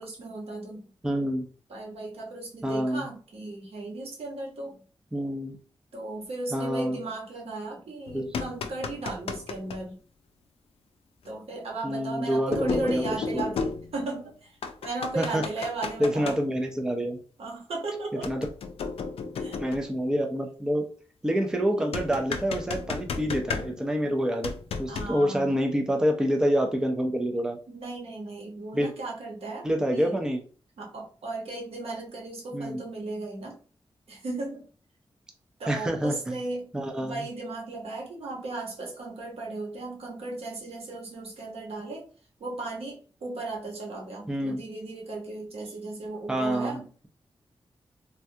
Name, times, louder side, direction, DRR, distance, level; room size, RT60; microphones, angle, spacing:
voice 1, 0.0-0.8 1.7-4.8 5.9-10.0 11.2-14.6 14.8-16.4 17.4-18.3 19.4-20.0 21.8-22.0 24.9-25.5 27.7-29.7 29.9-30.1 30.8-33.6 34.1-34.7 35.6-36.7 37.0-42.1 42.4-46.9, right 2 dB, 90° right, -1 dB, 1.0 m, -36 dB
voice 2, 1.0-1.5 2.6-3.1 5.1-5.6 6.5-7.0 8.1-8.2 11.8-13.0 13.3-13.4 15.2-15.4 16.0-17.2 18.2-18.5 19.6-20.9 21.2-24.5 24.8-27.6 28.7-28.9 29.6-30.4 32.5-32.8 35.7-36.4 36.7-37.3 44.3-44.6 46.3-47.1, equal, 5° right, 3 dB, 0.4 m, -27 dB
sound 1, 8.1-9.8 11.3-11.4 12.5-14.2 14.6-16.4 18.2-20.0 21.9-24.0 24.4-25.2, left 5 dB, 80° left, 0.4 m, -34 dB
3.3 x 2.3 x 2.6 m, 0.39 s
wide cardioid pair, 170°, 10 cm